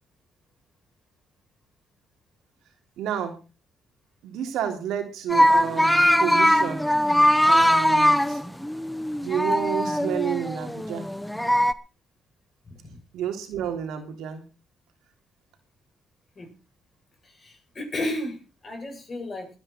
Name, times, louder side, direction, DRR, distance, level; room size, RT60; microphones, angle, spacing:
voice 1, 3.0-3.4 4.2-6.9 7.4-8.4 9.2-11.1 13.1-14.4, right 9 dB, 85° right, 5 dB, 3.2 m, -30 dB
sound 1, 5.3-11.7, equal, 5° left, 0.9 m, -21 dB
voice 2, 12.7-13.0 16.4-16.5 17.2-19.5, left 1 dB, 35° left, 2 dB, 8.0 m, -33 dB
20.5 x 9.7 x 4.5 m, 0.32 s
cardioid pair, 90°, 0 cm